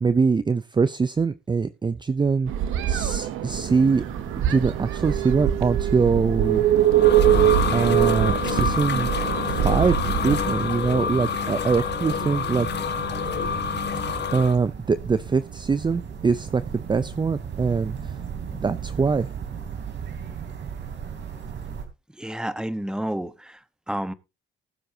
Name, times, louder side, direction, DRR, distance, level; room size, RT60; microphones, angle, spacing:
voice 1, 0.0-2.5 2.9-4.0 4.4-6.6 7.7-12.7 14.3-18.1 18.5-19.3, right 5 dB, 25° right, 0.6 m, -23 dB
sound 1, 2.5-10.4, right 11 dB, 90° right, 1.1 m, -23 dB
sound 2, 3.5-21.9, right 7 dB, 65° right, 3.5 m, -36 dB
sound 3, 6.6-14.5, left 7 dB, 60° left, 1.6 m, -28 dB
voice 2, 22.2-23.6 23.9-24.1, right 1 dB, 5° right, 1.1 m, -30 dB
20.0 x 7.8 x 2.8 m
cardioid pair, 90°, 20 cm